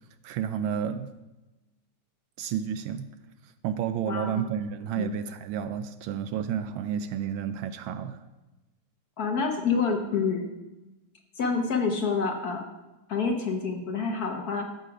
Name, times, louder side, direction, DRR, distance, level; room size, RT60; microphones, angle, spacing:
voice 1, 0.2-1.1 2.4-3.1 3.6-8.2, right 8 dB, 75° right, 11 dB, 1.3 m, -31 dB
voice 2, 4.1-4.4 5.0-5.1 9.2-10.5 11.3-12.6 13.1-14.7, left 5 dB, 55° left, 3 dB, 1.3 m, -27 dB
13.5 x 6.7 x 4.9 m, 1.1 s
omnidirectional pair, 2.4 m